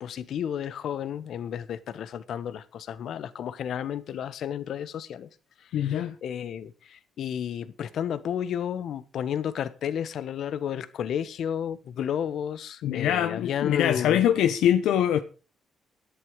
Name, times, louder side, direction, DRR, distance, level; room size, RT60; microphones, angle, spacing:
voice 1, 0.0-5.3 5.6-14.3, left 9 dB, 70° left, 1.5 m, -32 dB
voice 2, 5.7-6.1 12.8-15.2, left 10 dB, 85° left, 1.1 m, -23 dB
17.0 x 11.5 x 5.1 m
cardioid pair, 90°, 0 cm